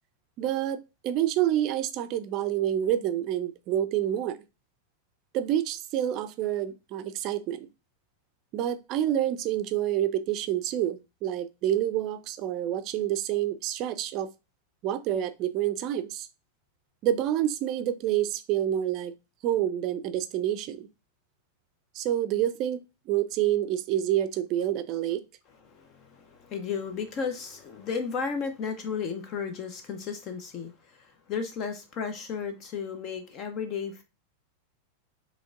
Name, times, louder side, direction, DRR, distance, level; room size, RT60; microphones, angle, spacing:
voice 1, 0.4-4.4 5.3-7.7 8.5-14.3 14.8-16.3 17.0-19.1 19.4-20.9 21.9-22.8 23.1-25.2, right 11 dB, 40° right, 0.4 m, -28 dB
voice 2, 25.7-34.0, left 6 dB, 35° left, 0.6 m, -34 dB
5.0 x 3.3 x 2.4 m
figure-of-eight pair, 90°, 0 cm